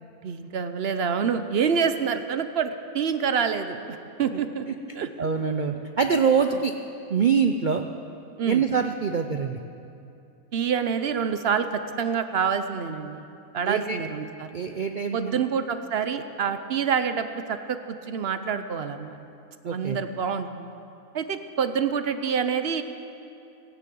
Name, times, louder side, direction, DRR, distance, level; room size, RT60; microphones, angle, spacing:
voice 1, 0.2-4.6 5.0-5.1 5.7-5.8 8.4-8.6 10.5-13.2 13.5-14.6 15.1-19.2 19.7-20.7 21.1-22.8, right 7 dB, 55° right, 10 dB, 0.8 m, -27 dB
voice 2, 5.2-6.7 7.1-7.8 8.5-9.6 13.7-14.0 14.5-15.4 19.6-20.0, right 6 dB, 80° right, 6 dB, 0.4 m, -24 dB
16.0 x 10.5 x 7.7 m, 2.7 s
omnidirectional pair, 1.6 m